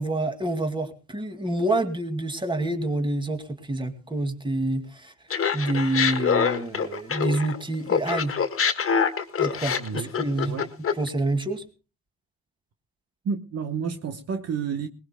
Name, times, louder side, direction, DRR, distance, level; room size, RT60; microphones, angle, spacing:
voice 1, 0.0-5.1 5.5-8.3 9.4-10.6 11.0-11.6, right 2 dB, 15° right, 2.3 m, -27 dB
Laughter, 5.3-7.6 7.9-11.1, left 6 dB, 45° left, 1.8 m, -25 dB
voice 2, 9.8-10.1 10.4-10.7 13.2-14.9, right 6 dB, 55° right, 1.2 m, -30 dB
22.0 x 19.5 x 2.2 m
cardioid pair, 90°, 30 cm